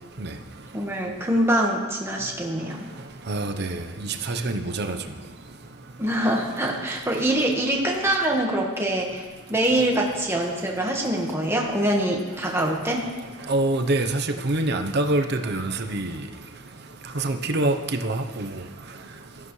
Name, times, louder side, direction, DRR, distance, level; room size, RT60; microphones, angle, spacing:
voice 1, 0.7-2.9 6.0-13.1, right 1 dB, 10° right, -1 dB, 1.5 m, -24 dB
voice 2, 3.3-3.8 4.3-5.0 13.5-16.2 17.1-18.5, right 2 dB, 50° right, 6 dB, 0.8 m, -25 dB
16.5 x 13.0 x 3.2 m, 1.4 s
head